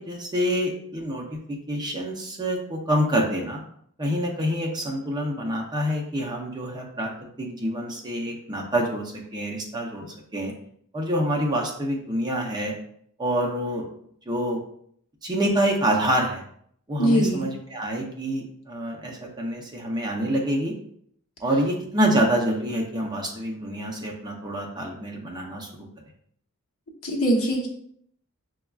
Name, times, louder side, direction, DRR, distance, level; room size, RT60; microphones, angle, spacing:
voice 1, 0.0-3.6 4.0-7.1 7.4-10.1 10.3-10.5 10.9-12.7 13.2-13.8 14.3-14.6 15.2-16.4 16.9-20.7 21.4-25.9, equal, 20° right, -1 dB, 0.6 m, -26 dB
voice 2, 17.0-17.5 27.0-27.7, equal, 65° left, -1 dB, 0.9 m, -22 dB
6.4 x 2.3 x 2.3 m, 0.67 s
head